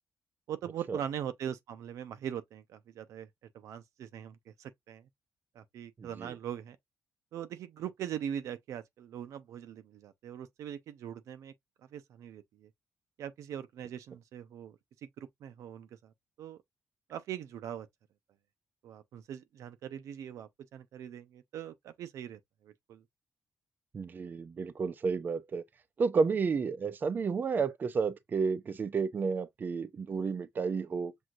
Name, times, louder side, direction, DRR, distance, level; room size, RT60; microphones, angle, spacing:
voice 1, 0.5-3.3 3.5-5.1 5.5-6.8 7.3-11.5 11.9-12.7 13.2-16.6 17.1-17.9 18.8-23.0, right 9 dB, 90° right, 0.6 m, -41 dB
voice 2, 6.0-6.3 23.9-25.6 26.0-31.1, right 5 dB, 40° right, 0.5 m, -31 dB
6.1 x 2.7 x 2.4 m
cardioid pair, 125°, 5 cm